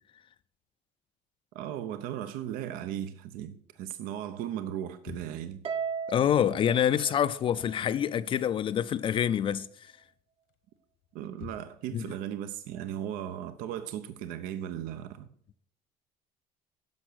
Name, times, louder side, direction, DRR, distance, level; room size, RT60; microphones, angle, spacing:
voice 1, 1.5-5.6 11.1-15.3, right 10 dB, 80° right, 0.8 m, -37 dB
sound 1, 5.0-5.6 7.4-7.9 8.2-9.1 9.4-9.8 10.5-12.0, left 8 dB, 80° left, 1.3 m, -49 dB
Harp, 5.6-8.1, right 6 dB, 45° right, 0.8 m, -37 dB
voice 2, 6.1-9.9 11.9-12.1, left 9 dB, 35° left, 0.4 m, -27 dB
10.5 x 6.8 x 6.3 m
cardioid pair, 140°, 15 cm